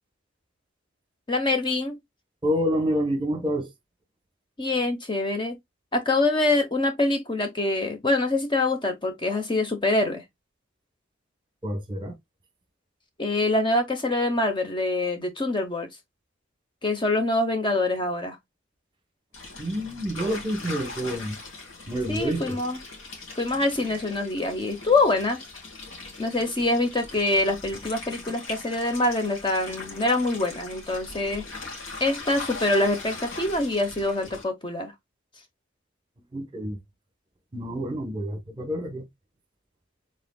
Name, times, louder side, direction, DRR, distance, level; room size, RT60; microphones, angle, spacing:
voice 1, 1.3-2.0 4.6-5.6 5.9-10.2 13.2-15.9 16.8-18.4 22.1-22.8 23.4-25.4 26.2-31.5 32.0-34.9, left 2 dB, 25° left, 0.9 m, -25 dB
voice 2, 2.4-3.7 11.6-12.1 19.6-21.4 21.9-22.6 36.3-36.8 37.5-39.0, equal, 25° right, 1.2 m, -28 dB
sound 1, 19.3-34.4, left 3 dB, 85° left, 2.2 m, -40 dB
4.8 x 3.8 x 2.3 m
head